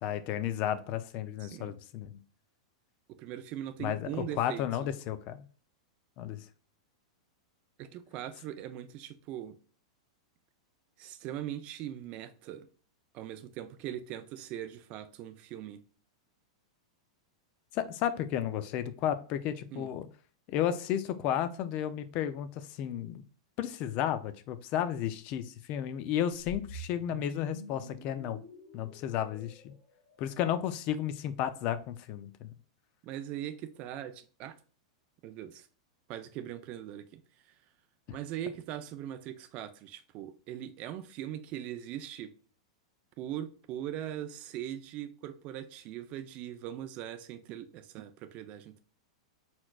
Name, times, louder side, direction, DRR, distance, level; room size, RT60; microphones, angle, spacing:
voice 1, 0.0-2.2 3.8-5.4 6.2-6.4 17.7-20.1 20.5-22.5 22.8-23.2 23.6-28.4 28.7-29.7 30.2-32.5, left 10 dB, 45° left, 0.5 m, -33 dB
voice 2, 1.4-1.7 3.2-4.7 7.8-9.6 11.0-12.7 13.1-15.8 19.7-19.9 33.0-34.5 35.2-35.7 36.1-37.2 38.1-42.3 43.2-48.8, right 11 dB, 40° right, 0.6 m, -40 dB
sound 1, 26.4-30.6, left 1 dB, 25° left, 1.6 m, -48 dB
4.5 x 4.3 x 2.3 m
hypercardioid pair, 130°, 3 cm